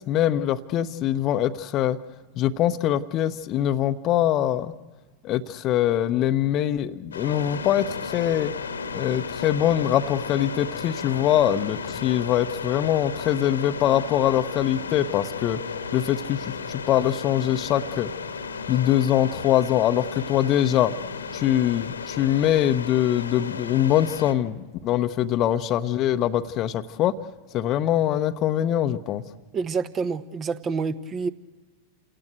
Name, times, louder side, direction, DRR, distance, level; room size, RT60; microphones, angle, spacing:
voice 1, 0.1-2.0 2.4-4.7 5.2-8.5 8.9-15.6 15.9-18.1 18.7-20.9 21.3-27.1 27.5-29.2, left 11 dB, 35° left, 9 dB, 0.9 m, -23 dB
sound 1, 7.1-24.3, left 5 dB, 75° left, 1.5 m, -34 dB
voice 2, 29.5-31.3, right 5 dB, 25° right, 13 dB, 1.1 m, -27 dB
28.5 x 18.0 x 8.1 m, 1.2 s
figure-of-eight pair, 90°, 0 cm